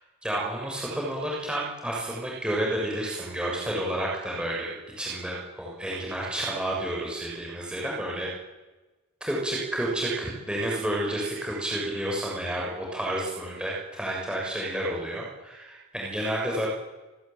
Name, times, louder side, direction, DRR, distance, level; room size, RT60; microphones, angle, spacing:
voice 1, 0.2-8.3 9.2-16.7, right 1 dB, 5° right, -4 dB, 6.9 m, -30 dB
28.5 x 19.5 x 9.3 m, 1.1 s
head